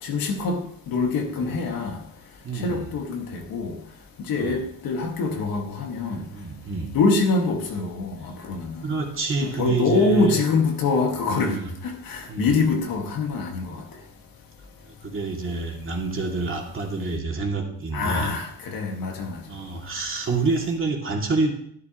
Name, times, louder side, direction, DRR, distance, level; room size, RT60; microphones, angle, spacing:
voice 1, 0.0-0.6 0.9-2.0 2.6-3.7 4.3-6.2 6.9-8.9 9.4-11.6 11.8-13.8 17.9-19.4, left 3 dB, 65° left, 2.1 m, -24 dB
voice 2, 2.4-2.9 4.3-4.6 6.1-6.9 8.8-10.4 11.3-11.7 12.3-12.5 15.0-18.4 19.5-21.5, right 3 dB, 35° right, 2.6 m, -27 dB
12.0 x 11.0 x 3.1 m
cardioid pair, 110°, 37 cm